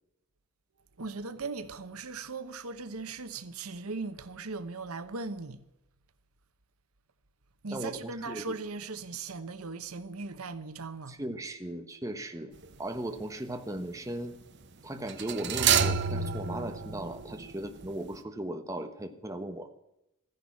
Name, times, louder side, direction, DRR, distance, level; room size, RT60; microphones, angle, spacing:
voice 1, 1.0-5.6 7.6-11.2, right 4 dB, 90° right, 1.0 m, -38 dB
voice 2, 7.7-8.6 11.1-12.5 12.8-14.4 14.8-19.7, right 1 dB, 15° right, 1.1 m, -37 dB
sound 1, 12.6-13.0 15.1-17.9 18.1-18.2, right 7 dB, 55° right, 1.0 m, -29 dB
14.0 x 10.5 x 7.2 m
head